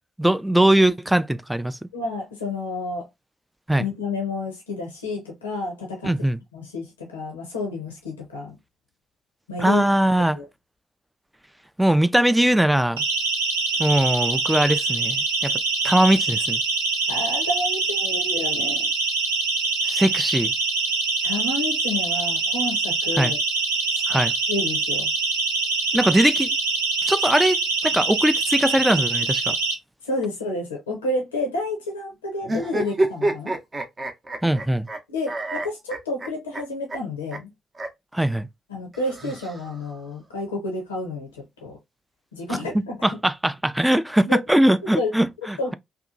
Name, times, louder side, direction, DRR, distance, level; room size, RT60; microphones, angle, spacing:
voice 1, 0.2-1.8 3.7-3.9 6.0-6.4 9.6-10.4 11.8-13.0 13.8-15.6 15.8-16.6 19.8-20.5 23.2-23.3 24.1-24.3 25.9-26.6 27.0-29.6 34.4-34.9 38.1-38.5 42.5-45.7, right 1 dB, 5° right, 0.3 m, -21 dB
voice 2, 1.9-3.1 3.8-6.1 6.5-8.6 9.5-9.9 10.3-10.4 17.1-18.9 21.2-23.4 24.5-25.1 30.0-33.5 35.1-37.5 38.7-41.8 42.3-43.2 44.3-44.4 44.9-45.1 45.6-45.7, left 2 dB, 90° left, 0.5 m, -30 dB
Siren, 13.0-29.7, right 3 dB, 90° right, 0.6 m, -24 dB
sound 1, 32.4-35.0 35.3-36.6 36.9-37.0 37.3-37.4 37.7-37.9 38.9-39.9, right 2 dB, 35° right, 0.7 m, -28 dB
2.7 x 2.2 x 2.4 m
hypercardioid pair, 40°, 0 cm